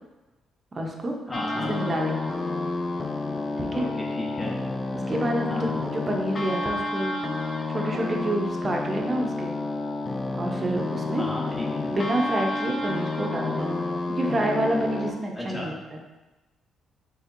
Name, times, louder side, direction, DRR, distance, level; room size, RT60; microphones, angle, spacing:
voice 1, 0.7-1.2 1.7-2.2 3.6-3.9 4.9-7.2 7.7-9.5 10.4-11.3 11.9-13.8 14.2-16.0, right 1 dB, 30° right, 1 dB, 0.6 m, -28 dB
sound 1, 1.3-15.1, left 2 dB, 35° left, 0.4 m, -30 dB
voice 2, 1.3-1.7 3.7-4.7 5.5-5.7 11.1-11.9 15.3-15.7, left 1 dB, 20° left, -2 dB, 1.0 m, -34 dB
4.3 x 3.4 x 2.5 m, 1.1 s
cardioid pair, 90°, 0 cm